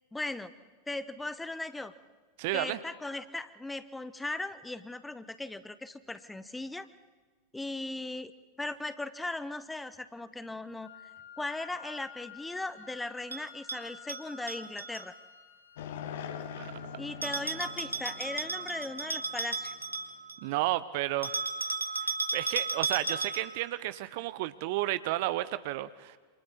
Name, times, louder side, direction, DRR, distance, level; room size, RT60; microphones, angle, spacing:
voice 1, 0.1-0.5 0.9-1.9 2.5-6.9 7.5-8.3 8.6-10.9 11.4-15.1 17.0-19.8, left 2 dB, 5° left, 14 dB, 1.0 m, -38 dB
voice 2, 2.4-2.8 16.6-16.7 20.4-21.4 22.0-26.2, right 16 dB, 50° right, 15 dB, 0.7 m, -32 dB
Wind instrument woodwind instrument, 10.8-18.8, left 8 dB, 80° left, 2.6 m, -53 dB
Bell, 13.3-15.0 17.2-20.5 21.2-23.6, right 3 dB, 85° right, 1.4 m, -35 dB
sound 1, 15.8-20.1, left 7 dB, 55° left, 1.4 m, -43 dB
28.0 x 27.0 x 4.2 m, 1.4 s
figure-of-eight pair, 90°, 0 cm